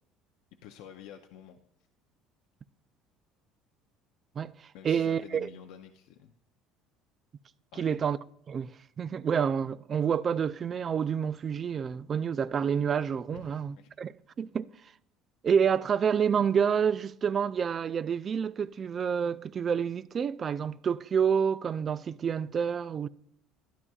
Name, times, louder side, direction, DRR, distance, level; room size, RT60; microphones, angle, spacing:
voice 1, 0.6-1.6 4.7-6.4 7.7-8.0 13.3-13.9, left 9 dB, 80° left, 0.6 m, -49 dB
voice 2, 4.4-5.5 7.8-8.2 8.5-14.7 15.4-23.1, right 7 dB, 35° right, 0.3 m, -28 dB
12.5 x 10.5 x 2.4 m
supercardioid pair, 110°, 0 cm